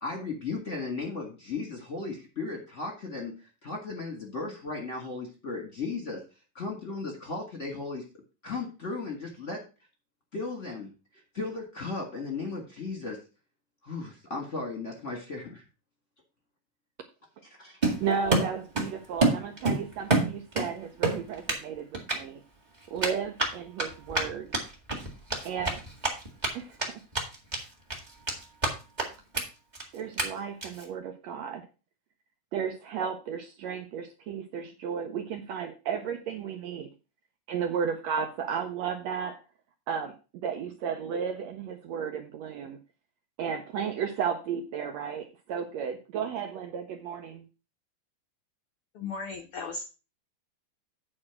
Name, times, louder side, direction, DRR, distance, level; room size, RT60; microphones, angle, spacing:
voice 1, 0.0-6.2 6.5-8.0 8.4-9.6 10.3-10.9 11.3-13.2 13.8-15.6 17.6-17.8, left 3 dB, 35° left, 1 dB, 1.2 m, -36 dB
Run, 17.8-18.9 19.2-20.7 21.0-21.6 21.9-22.2 23.0-26.5 26.8-26.9 27.1-27.6 27.9-28.7 29.0-29.1 29.3-29.4 29.7-29.8 30.2-30.3 30.6-30.8, right 2 dB, 20° right, 1.1 m, -27 dB
voice 2, 18.0-22.4 22.9-24.5 25.4-25.8 26.5-27.0 29.9-31.6 32.5-36.9 37.5-39.4 39.9-40.1 40.4-42.8 43.4-47.4, right 7 dB, 75° right, 5 dB, 1.6 m, -33 dB
voice 3, 48.9-49.8, left 4 dB, 80° left, 4 dB, 1.2 m, -36 dB
8.7 x 4.4 x 5.8 m, 0.31 s
omnidirectional pair, 3.8 m